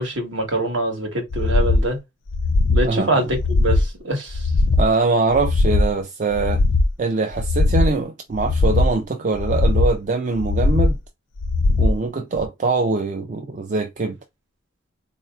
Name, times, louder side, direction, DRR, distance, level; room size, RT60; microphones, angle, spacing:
voice 1, 0.0-2.0 2.7-4.5, right 2 dB, 65° right, 1.3 m, -24 dB
sound 1, 1.3-1.9 2.3-2.9 3.3-3.9 4.3-4.9 5.3-5.9 6.3-6.9 7.3-7.9 8.3-8.9 9.4-9.9 10.4-11.0 11.4-12.0 12.4-12.5, left 2 dB, 65° left, 0.4 m, -19 dB
voice 2, 2.8-3.3 4.8-6.6 7.0-11.0 11.8-14.2, right 3 dB, 40° right, 0.4 m, -23 dB
4.0 x 2.7 x 2.3 m
head